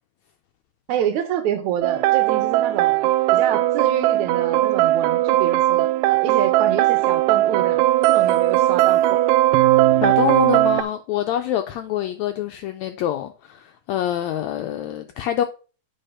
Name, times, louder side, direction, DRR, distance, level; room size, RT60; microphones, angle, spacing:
voice 1, 0.9-9.2, right 9 dB, 75° right, 2.0 m, -27 dB
sound 1, 1.8-10.8, right 15 dB, 90° right, 2.2 m, -18 dB
voice 2, 10.0-15.4, left 11 dB, 85° left, 1.6 m, -25 dB
9.1 x 4.2 x 5.4 m
omnidirectional pair, 3.7 m